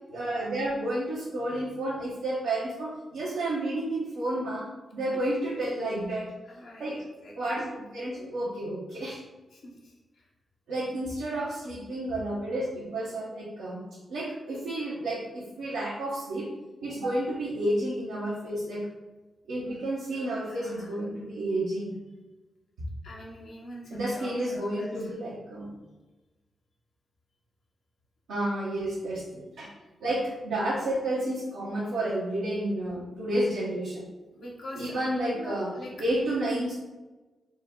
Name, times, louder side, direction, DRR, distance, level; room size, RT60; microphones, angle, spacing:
voice 1, 0.1-4.7 4.9-6.3 6.8-7.0 7.4-9.2 10.7-13.8 14.1-16.5 16.8-18.9 19.5-21.9 23.9-25.7 28.3-29.7 30.0-34.0 34.8-35.7 36.0-36.7, right 1 dB, 90° right, -8 dB, 0.8 m, -31 dB
voice 2, 6.4-7.6 9.5-10.3 20.1-21.0 23.0-25.1 34.3-35.9, left 1 dB, 75° left, -3 dB, 0.9 m, -44 dB
4.2 x 2.3 x 3.6 m, 1.2 s
supercardioid pair, 40°, 0 cm